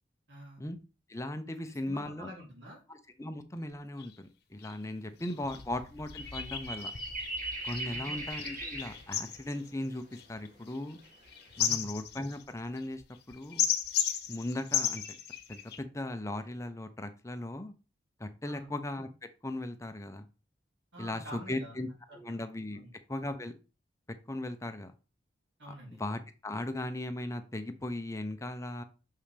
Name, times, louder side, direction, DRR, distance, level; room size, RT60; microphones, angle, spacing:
voice 1, 0.3-0.6 1.6-2.8 5.0-5.6 7.9-8.3 11.6-11.9 18.4-18.7 20.9-21.8 22.1-22.4 22.7-22.9 25.6-26.0, equal, 70° right, -1 dB, 3.1 m, -48 dB
voice 2, 1.1-2.3 2.9-6.9 7.6-11.0 11.6-13.0 13.3-13.7 14.3-15.0 15.5-17.7 18.2-19.1 19.4-20.3 21.0-21.9 22.2-22.8 23.1-23.6 24.3-24.9 26.0-28.8, left 1 dB, 15° left, 8 dB, 0.7 m, -37 dB
sound 1, 3.7-3.8 4.0-4.1 4.6-4.8 5.2-15.8, left 9 dB, 60° left, 1.0 m, -35 dB
sound 2, 6.2-9.1 10.5-10.6 11.0-11.6, right 1 dB, 45° right, 2.5 m, -39 dB
6.6 x 5.5 x 3.4 m, 0.32 s
head